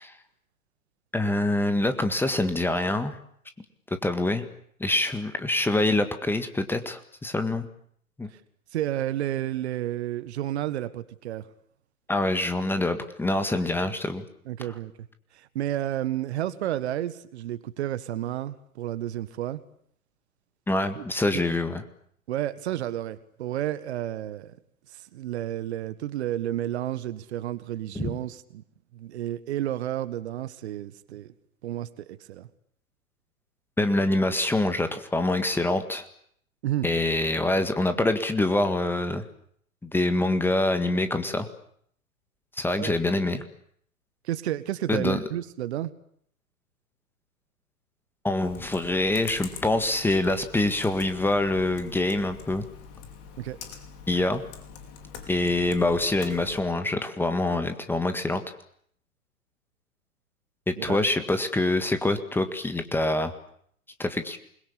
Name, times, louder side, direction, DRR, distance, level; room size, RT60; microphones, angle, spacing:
voice 1, 1.1-3.2 4.0-4.5 4.8-7.7 8.2-8.3 12.1-14.2 20.7-21.8 28.0-28.1 33.8-36.1 36.8-39.2 39.8-41.5 42.6-43.4 44.9-45.2 48.2-52.7 54.1-54.4 55.3-58.4 60.7-63.3 64.0-64.4, left 2 dB, 5° left, 9 dB, 1.8 m, -25 dB
voice 2, 8.7-11.5 14.5-14.9 15.3-19.6 20.9-21.0 21.3-21.4 22.3-24.5 24.9-28.6 28.9-31.3 31.6-32.5 36.6-36.9 42.7-43.0 44.2-45.9 53.4-53.6 60.8-61.1, right 13 dB, 45° right, 15 dB, 1.6 m, -31 dB
Computer keyboard, 48.4-56.6, left 6 dB, 40° left, 5.0 m, -44 dB
28.0 x 22.0 x 8.6 m, 0.66 s
figure-of-eight pair, 120°, 44 cm